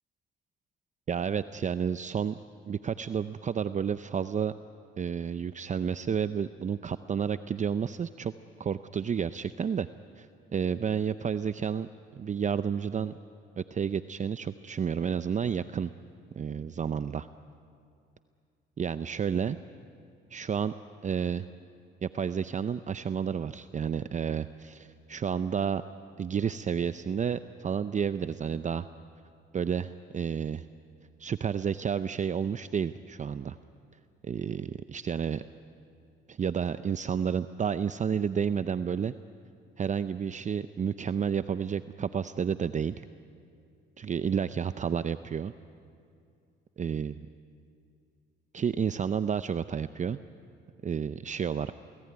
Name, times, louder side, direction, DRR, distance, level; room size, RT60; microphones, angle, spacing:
voice 1, 1.1-2.4 2.7-4.5 5.0-8.3 8.6-9.9 10.2-10.3 10.5-13.1 13.6-15.9 16.4-17.3 18.8-19.6 20.3-20.7 21.0-21.4 22.0-25.8 26.2-28.9 29.5-30.6 31.2-33.6 34.2-35.4 36.3-39.1 39.8-43.0 44.0-45.5 46.8-47.1 48.5-50.2 50.8-51.7, right 7 dB, 40° right, 12 dB, 0.6 m, -30 dB
28.5 x 19.0 x 9.7 m, 2.4 s
cardioid pair, 90°, 20 cm